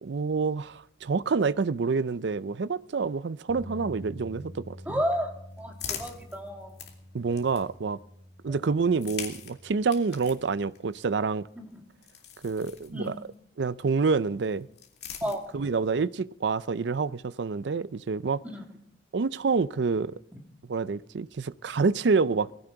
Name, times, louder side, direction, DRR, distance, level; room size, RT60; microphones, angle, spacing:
voice 1, 0.0-5.0 7.1-8.0 8.4-11.5 12.4-13.2 13.6-14.7 15.5-18.4 19.1-20.1 20.7-22.5, right 4 dB, 75° right, 0.5 m, -27 dB
sound 1, 3.5-9.7, left 1 dB, 10° left, 5.6 m, -47 dB
voice 2, 4.9-5.3 5.6-6.7 11.6-11.8 12.9-13.1 15.2-15.4 18.5-18.6, equal, 10° right, 2.2 m, -31 dB
sound 2, 5.3-8.0 8.8-13.4 14.4-15.9, left 8 dB, 60° left, 2.6 m, -44 dB
20.0 x 16.0 x 3.9 m
head